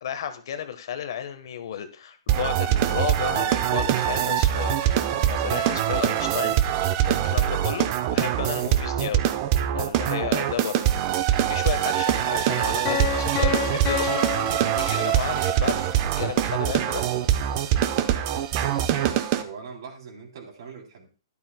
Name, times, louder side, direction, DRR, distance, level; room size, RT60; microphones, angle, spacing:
voice 1, 0.0-6.8 7.1-9.3 9.7-10.9 11.5-17.0, left 9 dB, 60° left, 9 dB, 1.2 m, -33 dB
sound 1, 2.3-19.4, right 11 dB, 35° right, 0.8 m, -23 dB
Piano, 12.8-15.6, left 9 dB, 30° left, 1.3 m, -30 dB
voice 2, 19.0-21.1, right 5 dB, 60° right, 3 dB, 3.2 m, -41 dB
13.5 x 11.5 x 2.2 m, 0.35 s
hypercardioid pair, 155°, 3 cm